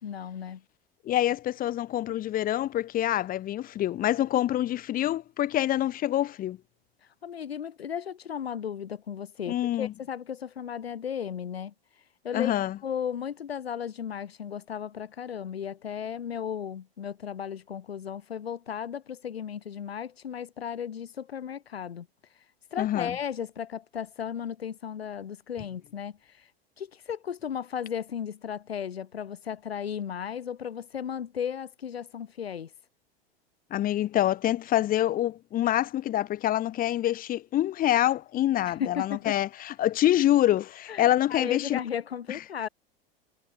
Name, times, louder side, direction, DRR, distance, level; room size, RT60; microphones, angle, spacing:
voice 1, 0.0-0.6 7.2-11.7 12.2-12.5 12.8-22.1 22.7-26.5 26.8-32.7 38.7-39.3 40.9-42.7, left 8 dB, 80° left, 4.1 m, -35 dB
voice 2, 1.1-6.6 9.5-9.9 12.3-12.8 22.8-23.2 33.7-41.8, left 13 dB, 30° left, 0.7 m, -26 dB
hypercardioid pair, 90°, 30 cm